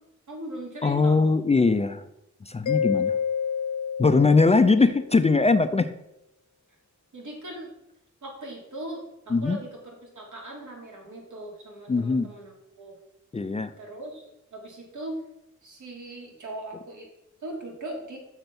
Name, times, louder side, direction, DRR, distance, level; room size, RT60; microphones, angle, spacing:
voice 1, 0.3-1.4 7.1-7.7 8.2-13.0 13.8-14.2 14.5-15.2 15.6-17.1 17.4-18.2, right 1 dB, 80° right, -1 dB, 2.9 m, -39 dB
voice 2, 0.8-2.0 2.4-3.2 4.0-5.9 9.3-9.6 11.9-12.3 13.3-13.7, left 4 dB, 20° left, 10 dB, 0.4 m, -21 dB
Mallet percussion, 2.7-5.2, left 7 dB, 75° left, 0.5 m, -28 dB
6.8 x 6.6 x 5.9 m, 0.84 s
wide cardioid pair, 135°, 30 cm